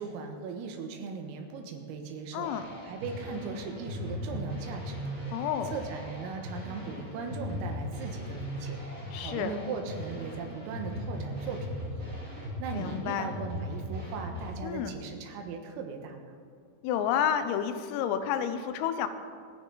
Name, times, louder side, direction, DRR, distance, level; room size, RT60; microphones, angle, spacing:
voice 1, 0.0-2.5 2.8-8.8 9.2-16.3, right 5 dB, 85° right, 4 dB, 4.0 m, -39 dB
voice 2, 2.3-2.7 5.3-5.8 9.1-9.5 12.7-13.3 14.6-14.9 16.8-19.1, left 9 dB, 85° left, 10 dB, 3.4 m, -30 dB
sound 1, 2.4-14.5, equal, 20° right, 2.9 m, -38 dB
27.0 x 9.3 x 4.0 m, 2.2 s
omnidirectional pair, 5.9 m